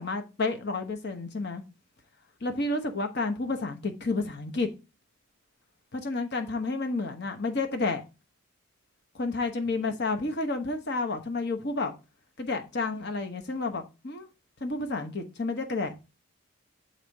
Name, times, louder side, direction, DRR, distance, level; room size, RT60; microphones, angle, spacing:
voice 1, 0.0-1.6 2.4-4.7 5.9-8.0 9.2-11.9 12.4-14.3 14.6-15.9, left 3 dB, 50° left, 1.1 m, -30 dB
7.1 x 4.1 x 4.7 m
head